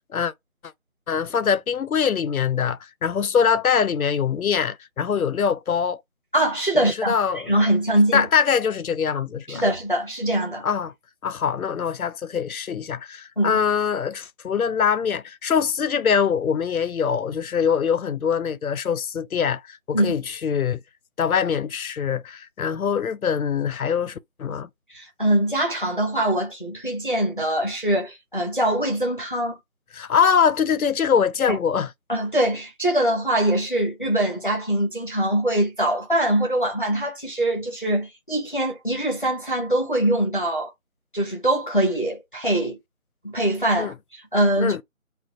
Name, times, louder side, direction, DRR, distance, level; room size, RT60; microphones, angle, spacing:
voice 1, 1.1-6.0 7.0-7.5 8.1-9.6 10.6-10.9 11.2-20.8 21.2-24.7 29.9-31.9 43.8-43.9 44.6-44.8, left 7 dB, 85° left, 0.5 m, -23 dB
voice 2, 6.3-7.2 7.5-8.3 9.5-10.6 13.4-13.6 19.9-20.1 24.9-29.6 31.5-31.6 32.1-40.7 41.1-42.8 43.2-44.8, right 1 dB, 35° left, 0.7 m, -23 dB
2.4 x 2.2 x 3.7 m
figure-of-eight pair, 170°, 41 cm